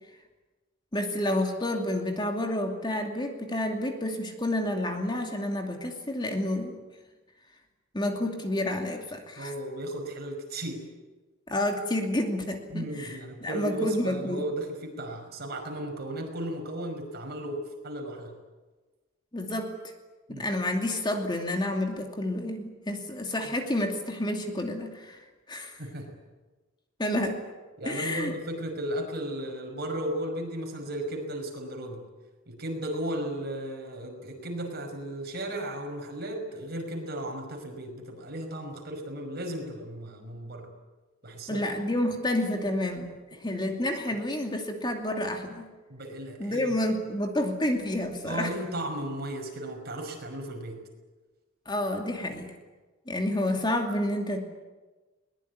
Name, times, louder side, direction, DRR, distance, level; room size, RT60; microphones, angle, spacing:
voice 1, 0.9-6.8 7.9-9.5 11.5-14.4 19.3-19.7 20.3-25.2 25.5-25.8 27.0-27.4 27.8-28.3 41.5-45.7 46.4-48.5 51.7-52.5 53.1-54.4, left 1 dB, 20° left, 3 dB, 2.6 m, -29 dB
voice 2, 9.4-10.8 12.7-18.3 20.3-20.5 25.8-26.1 27.8-32.0 32.5-40.7 41.2-41.6 45.9-46.7 48.3-50.8, right 1 dB, 50° right, 3 dB, 5.6 m, -35 dB
22.5 x 20.5 x 9.6 m, 1.2 s
head